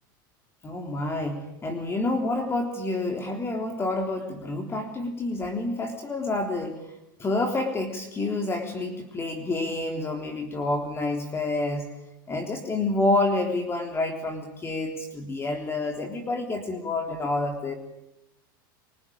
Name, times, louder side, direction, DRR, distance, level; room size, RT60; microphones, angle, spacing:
voice 1, 0.6-6.9 7.2-11.9 12.3-17.7, left 2 dB, 20° left, 4 dB, 3.5 m, -28 dB
25.0 x 24.0 x 8.8 m, 0.88 s
hypercardioid pair, 110°, 11 cm